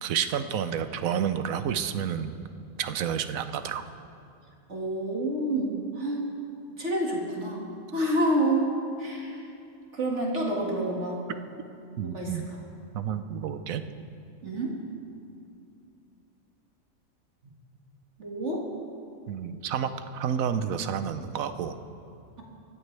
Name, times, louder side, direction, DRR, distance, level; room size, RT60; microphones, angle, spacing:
voice 1, 0.0-2.4 2.8-3.9 12.0-12.4 12.9-13.8 19.3-21.8, right 8 dB, 90° right, 10 dB, 1.2 m, -30 dB
voice 2, 4.7-6.2 6.8-8.7 9.0-9.4 9.9-11.2 12.1-12.4 14.4-14.7 18.2-18.6, right 1 dB, 60° right, -2 dB, 2.3 m, -28 dB
25.0 x 13.5 x 3.3 m, 2.6 s
omnidirectional pair, 1.4 m